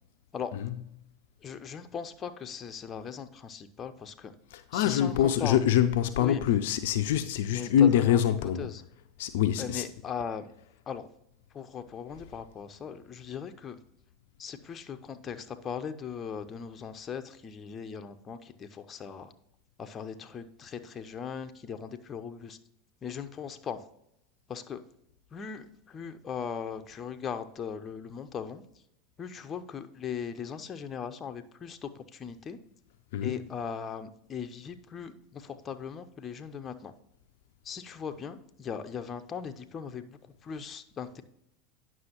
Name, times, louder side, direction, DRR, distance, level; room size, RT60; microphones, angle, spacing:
voice 1, 1.4-4.3 4.7-5.6 6.2-6.4 7.5-8.3 8.6-8.8 9.6-10.5 10.9-11.1 11.5-13.8 14.4-19.3 19.8-22.6 23.0-23.8 24.5-24.8 25.3-28.6 29.2-32.6 33.2-36.9 37.6-41.2, left 7 dB, 30° left, 0.7 m, -39 dB
voice 2, 4.5-8.7 9.2-9.9 33.1-33.4, left 10 dB, 70° left, 0.4 m, -25 dB
9.4 x 6.2 x 3.0 m
hypercardioid pair, 85°, 0 cm